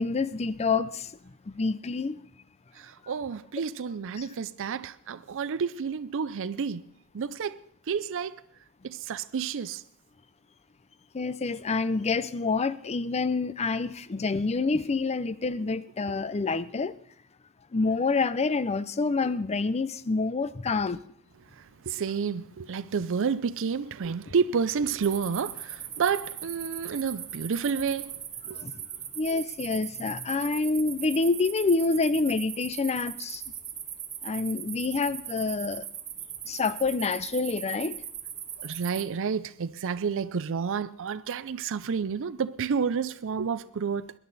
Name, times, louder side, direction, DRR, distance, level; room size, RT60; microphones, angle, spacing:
voice 1, 0.0-2.2 11.1-16.9 17.7-21.0 28.5-28.7 29.2-33.4 34.2-35.8 36.5-38.0, left 4 dB, 30° left, 0.5 m, -27 dB
voice 2, 2.7-6.9 7.1-7.6 7.9-8.4 8.8-9.8 21.5-28.6 38.6-44.1, right 6 dB, 60° right, 0.5 m, -30 dB
sound 1, 25.0-39.0, right 9 dB, 35° right, 1.4 m, -39 dB
21.5 x 11.0 x 4.1 m
head